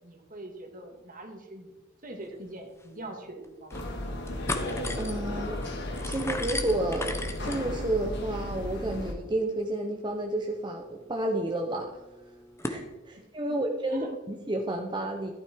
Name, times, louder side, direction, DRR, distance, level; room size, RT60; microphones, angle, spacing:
voice 1, 0.0-1.7 2.0-3.8 13.9-14.1, right 1 dB, 45° right, 4 dB, 2.4 m, -42 dB
sound 1, 2.5-2.6 2.8-2.9 3.4-3.9 4.2-12.8, left 2 dB, 15° left, 1.2 m, -39 dB
sound 2, 3.7-9.1, left 1 dB, 60° left, 3.0 m, -34 dB
voice 2, 5.0-5.6 6.0-12.0 12.6-15.3, right 1 dB, 25° right, 2 dB, 1.0 m, -31 dB
14.5 x 13.0 x 4.7 m, 1.1 s
head